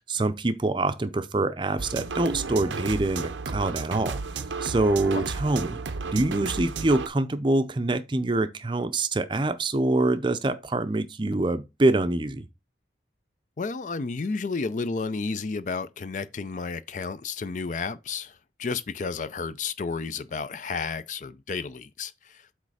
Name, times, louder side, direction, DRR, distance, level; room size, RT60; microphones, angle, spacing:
voice 1, 0.1-4.2 4.6-5.8 6.1-12.4, right 2 dB, 25° right, 0.5 m, -25 dB
sound 1, 1.8-7.1, right 4 dB, 85° right, 0.7 m, -33 dB
voice 2, 13.6-22.5, left 4 dB, 45° left, 0.4 m, -32 dB
8.1 x 3.2 x 4.8 m
head